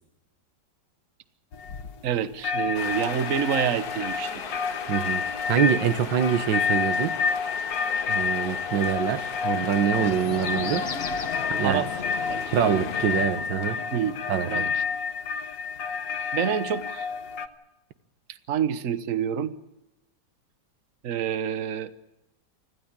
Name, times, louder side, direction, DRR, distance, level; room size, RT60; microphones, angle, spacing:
sound 1, 1.5-2.1 2.4-17.5, left 5 dB, 80° left, 1.9 m, -30 dB
voice 1, 2.0-4.4 11.6-11.9 12.3-12.8 13.9-14.2 14.5-14.8 16.3-17.1 18.5-19.5 21.0-21.9, right 8 dB, 50° right, 1.4 m, -27 dB
sound 2, 2.7-13.3, left 6 dB, 60° left, 1.9 m, -38 dB
voice 2, 4.9-7.2 8.1-10.9 11.5-11.8 12.5-13.8 14.3-14.7, right 9 dB, 85° right, 1.7 m, -25 dB
sound 3, 9.9-14.9, left 6 dB, 40° left, 1.1 m, -35 dB
25.0 x 16.0 x 8.8 m
omnidirectional pair, 2.0 m